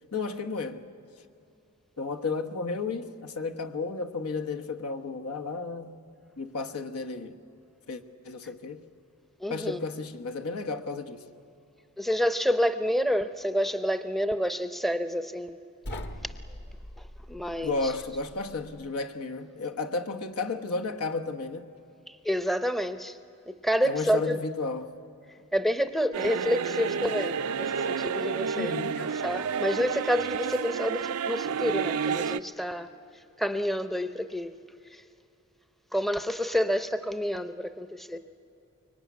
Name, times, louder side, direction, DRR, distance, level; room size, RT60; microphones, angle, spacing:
voice 1, 0.1-0.8 2.0-6.0 6.4-7.3 7.9-8.8 9.5-11.2 17.6-21.7 23.8-24.9 28.5-29.1, left 3 dB, 85° left, 1.3 m, -33 dB
voice 2, 9.4-9.8 12.0-15.6 16.2-16.3 17.0-17.9 22.1-23.2 23.5-24.4 25.5-32.9 33.4-34.6 34.9-35.0 35.9-38.2, equal, ahead, 0.6 m, -29 dB
sound 1, 15.8-18.9, left 1 dB, 50° left, 1.3 m, -42 dB
sound 2, 26.1-32.4, right 6 dB, 90° right, 0.5 m, -30 dB
24.5 x 23.0 x 9.4 m
head